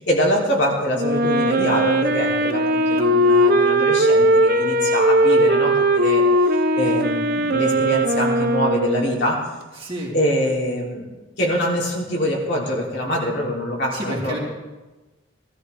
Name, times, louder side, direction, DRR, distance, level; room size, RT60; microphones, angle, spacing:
voice 1, 0.1-6.2 6.8-9.5 10.1-11.1 11.4-14.4, equal, 60° left, -3 dB, 3.2 m, -24 dB
Wind instrument woodwind instrument, 0.9-9.3, right 1 dB, 50° right, 0.8 m, -18 dB
voice 2, 9.8-10.1 13.9-14.4, right 1 dB, 30° right, -4 dB, 3.1 m, -29 dB
19.5 x 13.5 x 3.5 m, 1.2 s
head